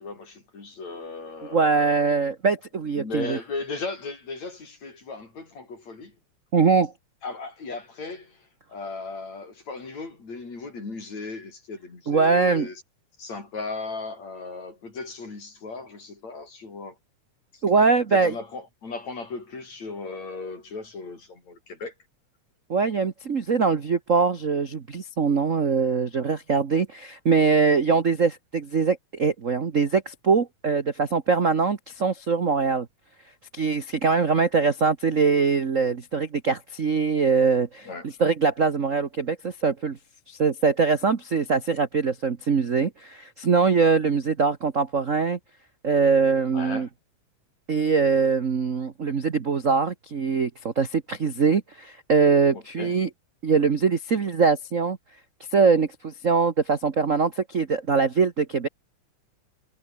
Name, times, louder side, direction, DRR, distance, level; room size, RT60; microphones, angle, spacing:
voice 1, 0.0-2.1 2.9-6.2 7.2-12.8 13.2-17.0 17.5-17.6 18.1-21.9 37.9-38.1 46.5-46.9 52.5-53.0, left 3 dB, 65° left, 7.8 m, -36 dB
voice 2, 1.5-3.4 6.5-6.9 12.1-12.7 17.6-18.3 22.7-32.9 33.5-40.0 40.3-45.4 45.8-46.9 47.7-53.1 53.4-55.0 55.5-58.7, right 5 dB, 50° right, 0.9 m, -22 dB
omnidirectional pair, 3.4 m